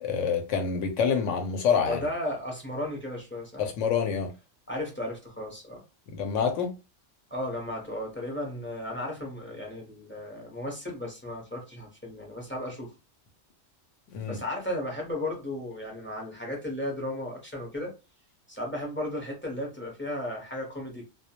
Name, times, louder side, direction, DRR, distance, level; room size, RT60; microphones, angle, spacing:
voice 1, 0.0-2.0 3.6-4.3 6.1-6.7 14.1-14.4, left 6 dB, 75° left, 0.9 m, -27 dB
voice 2, 1.8-3.6 4.7-5.8 7.3-12.9 14.3-17.9 18.5-21.0, left 1 dB, 15° left, 0.6 m, -35 dB
2.2 x 2.2 x 2.8 m
omnidirectional pair, 1.3 m